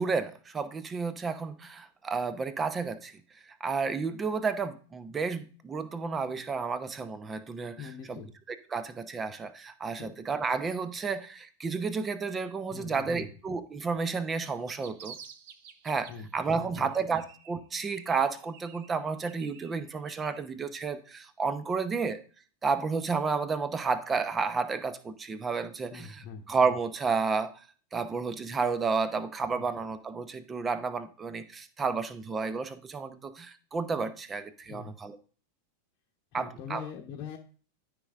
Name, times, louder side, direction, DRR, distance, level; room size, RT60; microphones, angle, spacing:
voice 1, 0.0-3.1 3.6-8.2 8.5-15.2 15.8-22.2 22.6-27.6 27.9-35.2 36.3-36.8, right 5 dB, 20° right, 13 dB, 0.8 m, -31 dB
voice 2, 7.8-8.3 10.0-10.3 12.7-13.3 16.1-16.3 16.6-17.0 25.9-26.4 29.5-29.6 34.6-34.9 36.3-37.4, left 6 dB, 40° left, -1 dB, 1.0 m, -43 dB
sound 1, 14.7-16.4 16.7-17.7 17.9-20.4, right 7 dB, 50° right, 0.9 m, -51 dB
13.0 x 5.2 x 2.5 m, 0.40 s
figure-of-eight pair, 90°, 0 cm